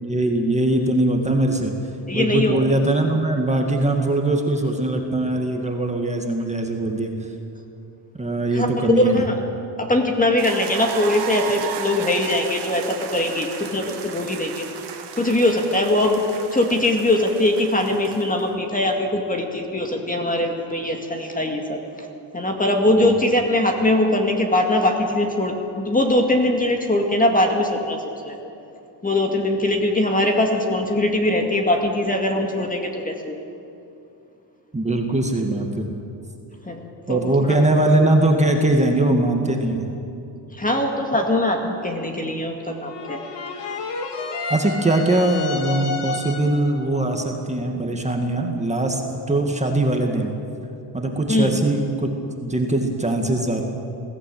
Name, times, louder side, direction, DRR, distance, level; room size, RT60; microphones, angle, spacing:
voice 1, 0.0-1.7 2.1-7.1 8.2-9.2 22.9-23.2 34.7-35.9 37.1-39.9 44.5-50.3 50.9-52.1 52.4-53.6, right 2 dB, 15° right, 2 dB, 2.0 m, -21 dB
voice 2, 2.1-2.6 8.5-9.3 9.8-14.7 15.2-16.2 16.5-21.8 22.3-28.4 29.0-33.4 36.7-37.6 40.5-43.2 51.3-51.6, left 1 dB, 20° left, 2 dB, 2.1 m, -21 dB
sound 1, 10.4-18.5, right 8 dB, 70° right, 2.1 m, -35 dB
sound 2, 42.8-46.7, left 4 dB, 70° left, 2.4 m, -30 dB
21.5 x 15.5 x 8.7 m, 2.7 s
cardioid pair, 120°, 44 cm